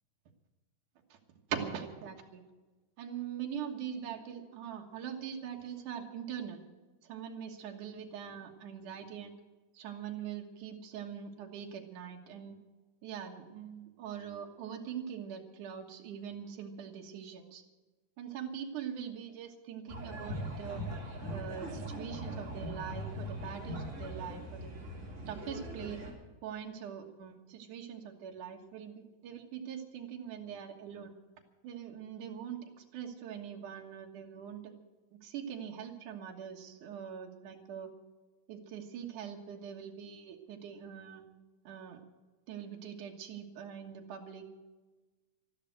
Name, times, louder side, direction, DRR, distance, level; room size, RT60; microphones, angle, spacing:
voice 1, 1.5-2.4 3.0-6.6 7.0-9.3 9.7-12.6 13.0-17.6 18.2-20.8 21.3-24.7 25.3-26.0 26.4-31.1 31.6-34.7 35.2-37.9 38.5-41.2 41.6-42.0 42.5-44.5, right 8 dB, 80° right, 2 dB, 2.9 m, -42 dB
sound 1, 19.9-26.1, equal, 25° right, 3.6 m, -41 dB
13.5 x 12.5 x 7.8 m, 1.2 s
omnidirectional pair, 3.5 m